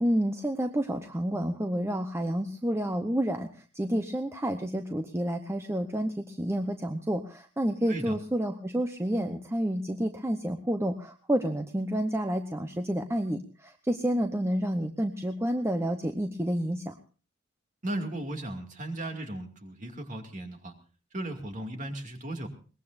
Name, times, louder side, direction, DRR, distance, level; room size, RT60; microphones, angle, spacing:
voice 1, 0.0-3.5 3.7-16.9, equal, 15° right, 6 dB, 0.9 m, -29 dB
voice 2, 17.8-20.7 21.1-22.5, right 1 dB, 40° right, 4 dB, 2.5 m, -36 dB
22.0 x 20.0 x 2.6 m, 0.37 s
head